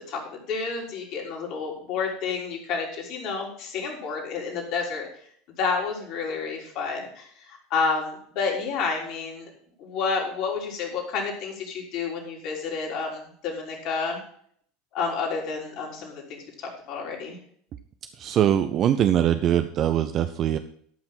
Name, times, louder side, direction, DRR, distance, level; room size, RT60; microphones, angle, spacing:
voice 1, 0.1-5.1 5.6-9.5 9.8-14.2 14.9-17.4, left 5 dB, 55° left, -1 dB, 3.8 m, -30 dB
voice 2, 18.2-20.6, right 10 dB, 45° right, 10 dB, 0.6 m, -22 dB
12.5 x 5.8 x 5.7 m, 0.62 s
hypercardioid pair, 80°, 0 cm